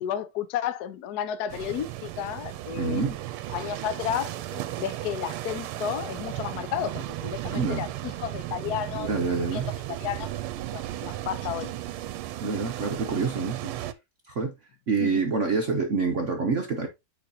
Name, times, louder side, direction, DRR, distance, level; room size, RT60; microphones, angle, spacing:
voice 1, 0.0-3.0 3.5-9.1 9.5-9.6 9.9-10.3 10.7-11.7 15.0-15.3, left 9 dB, 70° left, 0.9 m, -32 dB
sound 1, 1.5-13.9, right 14 dB, 90° right, 1.5 m, -35 dB
voice 2, 2.8-3.2 7.5-7.8 9.0-9.7 12.4-13.7 14.3-14.5 14.9-16.9, right 4 dB, 60° right, 0.8 m, -27 dB
8.9 x 4.9 x 2.7 m
omnidirectional pair, 2.4 m